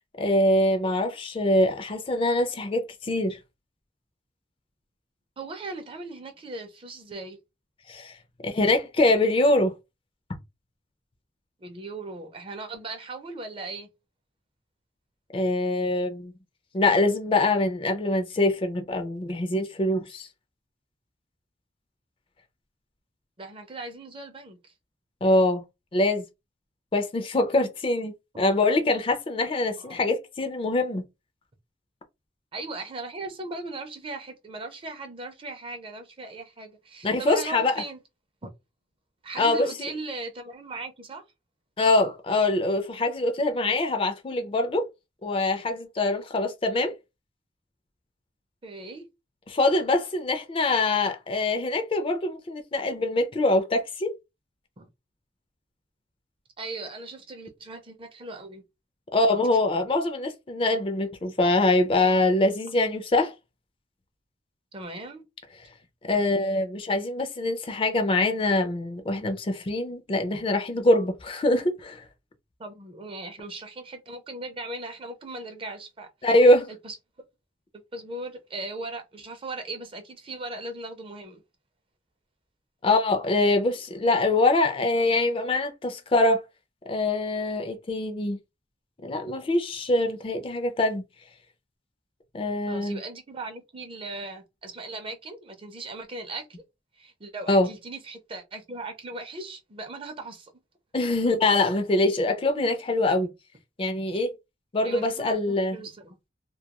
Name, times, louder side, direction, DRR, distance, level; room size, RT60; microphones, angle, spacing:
voice 1, 0.2-3.4 7.9-8.1 8.4-9.7 15.3-16.3 16.7-20.3 25.2-25.6 25.9-26.2 26.9-31.0 37.0-37.8 39.4-39.9 41.8-44.9 45.2-46.9 49.5-54.1 59.1-63.3 66.0-72.1 76.2-76.7 82.8-86.4 86.9-88.4 89.0-91.0 92.3-93.0 97.5-97.7 100.9-103.3 103.8-104.3 104.7-105.8, left 2 dB, 30° left, 0.4 m, -24 dB
voice 2, 5.4-7.4 11.6-13.9 23.4-24.7 29.8-30.0 32.5-38.0 38.4-38.5 39.2-41.2 48.6-49.1 54.8-54.9 56.6-58.6 64.7-65.2 72.6-76.1 76.7-76.9 77.9-81.4 92.7-96.6 97.0-100.5 104.8-106.2, right 2 dB, 30° right, 0.5 m, -38 dB
2.2 x 2.2 x 2.9 m
head